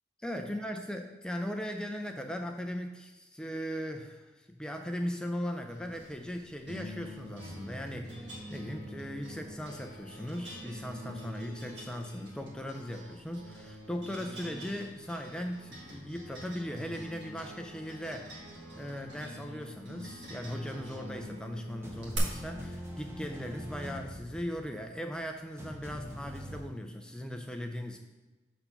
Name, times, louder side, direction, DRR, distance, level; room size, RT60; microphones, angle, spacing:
voice 1, 0.2-18.4 18.8-28.0, equal, 5° left, 4 dB, 0.4 m, -38 dB
sound 1, 5.7-22.2, equal, 75° right, 1.8 m, -46 dB
sound 2, 21.8-26.6, equal, 15° right, 0.8 m, -44 dB
6.7 x 4.2 x 5.7 m, 1.2 s
head